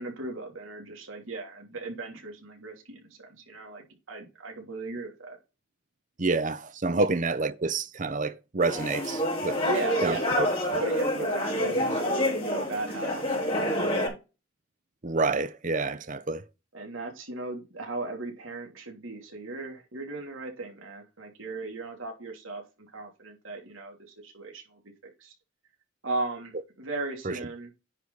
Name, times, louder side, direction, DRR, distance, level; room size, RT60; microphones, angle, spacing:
voice 1, 0.0-5.4 9.6-10.3 10.8-13.9 16.7-22.6 22.9-25.3 26.0-27.7, right 2 dB, 80° right, 3.0 m, -37 dB
voice 2, 6.2-9.6 10.0-10.5 10.7-10.8 15.0-16.4 27.2-27.4, right 3 dB, 40° right, 0.7 m, -28 dB
sound 1, 8.6-14.1, equal, 30° left, 4.5 m, -27 dB
10.0 x 4.9 x 4.0 m
head